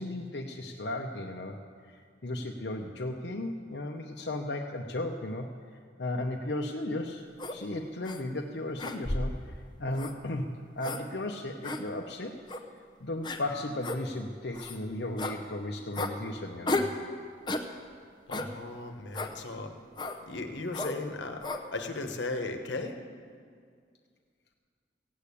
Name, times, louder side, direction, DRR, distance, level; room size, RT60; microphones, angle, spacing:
voice 1, 0.0-1.6 1.9-5.5 6.0-12.3 13.0-16.9, left 1 dB, 65° left, 2 dB, 0.8 m, -35 dB
sound 1, 7.4-7.6 8.0-8.2 8.8-9.4 9.9-10.1 10.8-11.0 11.6-11.8 12.5-12.6 13.2-13.4 13.8-14.0 14.5-14.8 15.2-15.4 15.9-16.1 16.7-17.0 17.5-17.7 18.3-18.5 19.1-19.3 20.0-20.2 20.7-21.0 21.4-21.6, left 2 dB, 25° left, 0.7 m, -33 dB
voice 2, 18.3-19.7 20.3-21.4 21.7-23.0, left 2 dB, 85° left, 5 dB, 1.2 m, -36 dB
16.0 x 8.5 x 8.4 m, 2.1 s
head